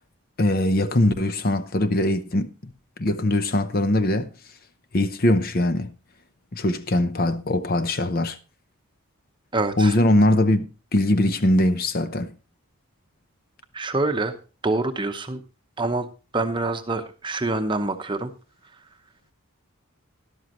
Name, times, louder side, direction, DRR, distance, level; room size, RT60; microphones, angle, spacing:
voice 1, 0.4-2.7 3.0-4.3 4.9-5.9 6.5-8.4 9.8-12.3, left 1 dB, 40° left, 0.8 m, -21 dB
voice 2, 9.5-9.9 13.7-14.4 14.6-15.4 15.8-16.1 16.3-18.3, right 2 dB, 20° right, 0.8 m, -25 dB
13.0 x 11.5 x 3.0 m
head